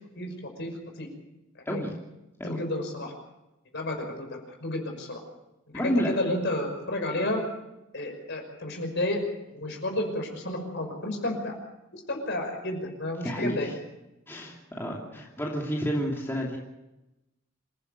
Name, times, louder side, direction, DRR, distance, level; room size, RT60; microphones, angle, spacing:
voice 1, 2.4-3.1 3.7-5.2 5.8-7.4 7.9-9.2 9.5-11.5 11.9-13.7, left 1 dB, 55° left, 3 dB, 5.8 m, -31 dB
voice 2, 5.7-6.1 13.2-13.7 14.3-16.6, equal, 10° left, -2 dB, 2.8 m, -30 dB
27.0 x 15.0 x 6.8 m, 0.95 s
head